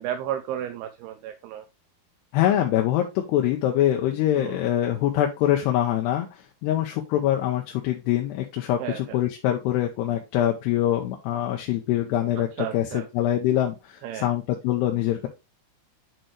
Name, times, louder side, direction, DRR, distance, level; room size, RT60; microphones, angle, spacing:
voice 1, 0.0-1.7 4.4-4.6 8.8-9.2 12.4-13.1 14.0-14.3, right 10 dB, 80° right, 2.5 m, -33 dB
voice 2, 2.3-6.3 6.6-15.3, left 12 dB, 90° left, 2.9 m, -24 dB
9.0 x 4.4 x 3.2 m
omnidirectional pair, 4.7 m